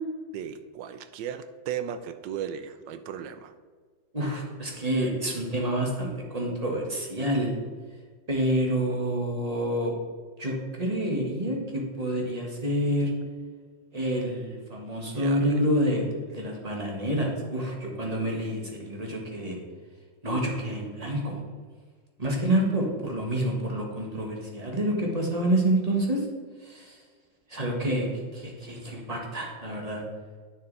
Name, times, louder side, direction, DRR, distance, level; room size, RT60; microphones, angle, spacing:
voice 1, 0.3-3.5 15.1-15.6, right 9 dB, 80° right, 10 dB, 1.2 m, -36 dB
voice 2, 4.1-7.6 8.3-9.9 10.4-13.1 13.9-19.6 20.2-21.4 22.2-26.2 26.6-27.0 27.5-28.1 28.3-30.0, right 1 dB, 20° right, 0 dB, 1.5 m, -28 dB
9.4 x 6.6 x 4.0 m, 1.5 s
omnidirectional pair, 2.0 m